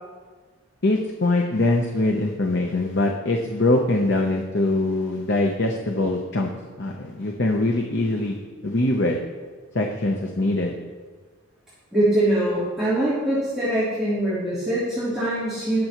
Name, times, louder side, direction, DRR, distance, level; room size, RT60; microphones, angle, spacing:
voice 1, 0.8-6.5 6.8-9.2 9.7-10.7, left 2 dB, 50° left, 2 dB, 0.8 m, -23 dB
voice 2, 11.9-15.8, right 1 dB, ahead, -13 dB, 3.3 m, -23 dB
19.5 x 6.9 x 3.0 m, 1.4 s
head